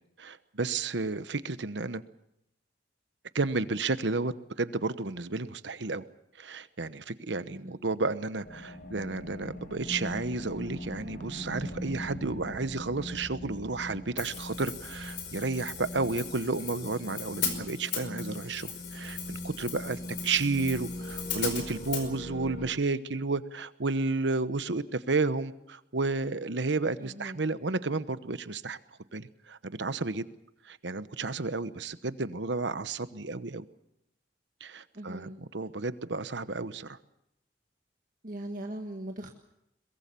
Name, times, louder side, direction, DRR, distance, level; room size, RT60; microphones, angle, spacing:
voice 1, 0.2-2.0 3.3-4.3 4.6-6.0 6.4-28.8 29.1-30.2 30.7-33.6 34.6-37.0, right 3 dB, 80° right, 13 dB, 1.1 m, -32 dB
voice 2, 7.5-7.8 27.0-27.4 34.9-35.4 38.2-39.3, right 1 dB, 50° right, 3 dB, 1.7 m, -40 dB
sound 1, 8.4-22.7, left 1 dB, 55° left, 4.5 m, -41 dB
Hi-hat, 14.2-22.1, left 8 dB, 80° left, 4.9 m, -38 dB
22.5 x 21.5 x 6.9 m, 0.81 s
head